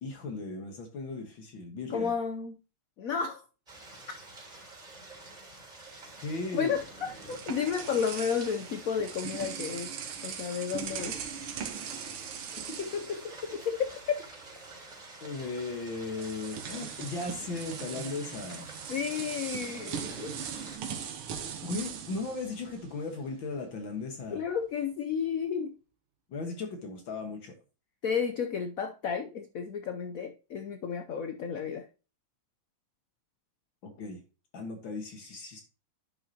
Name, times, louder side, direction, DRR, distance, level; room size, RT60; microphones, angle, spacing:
voice 1, 0.0-2.1 6.2-6.7 12.8-13.2 15.2-18.7 21.6-24.4 26.3-27.6 33.8-34.2 34.5-35.6, left 3 dB, 65° left, 4 dB, 2.1 m, -37 dB
voice 2, 1.9-2.6 3.0-3.4 6.5-9.9 10.2-11.2 14.1-14.2 18.9-20.3 24.3-25.7 28.0-31.8, left 7 dB, 90° left, 8 dB, 0.7 m, -32 dB
sound 1, 3.7-20.8, right 2 dB, 20° right, 3.9 m, -48 dB
sound 2, 6.7-14.0 14.3-14.5 15.6-15.7 16.1-23.3, right 7 dB, 80° right, 1.9 m, -40 dB
10.5 x 6.0 x 2.8 m, 0.33 s
omnidirectional pair, 2.4 m